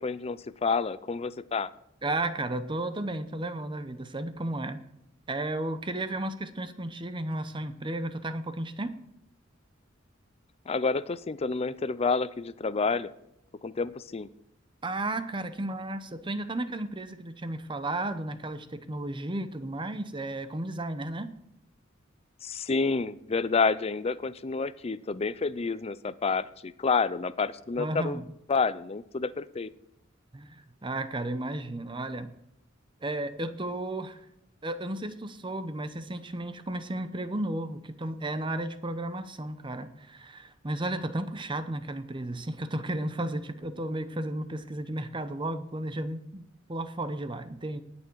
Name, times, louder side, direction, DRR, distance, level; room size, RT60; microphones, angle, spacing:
voice 1, 0.0-1.7 10.7-13.1 13.6-14.3 22.4-28.2 28.5-29.7, left 4 dB, 30° left, 16 dB, 0.5 m, -29 dB
voice 2, 2.0-4.8 5.3-9.0 14.8-21.3 27.8-28.3 30.3-32.3 33.0-34.2 34.6-47.8, right 1 dB, 25° right, 11 dB, 0.8 m, -33 dB
19.0 x 7.1 x 4.6 m, 0.81 s
head